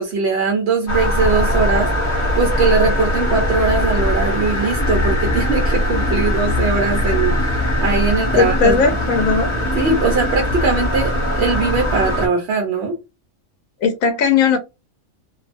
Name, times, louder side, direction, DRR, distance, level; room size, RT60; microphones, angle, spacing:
voice 1, 0.0-1.9 2.4-8.7 9.8-13.0, right 4 dB, 60° right, 2 dB, 0.8 m, -20 dB
sound 1, 0.9-12.3, left 1 dB, 25° left, 0.9 m, -20 dB
voice 2, 8.3-9.5 13.8-14.6, left 5 dB, 90° left, 6 dB, 1.0 m, -17 dB
2.6 x 2.2 x 2.4 m, 0.25 s
omnidirectional pair, 1.4 m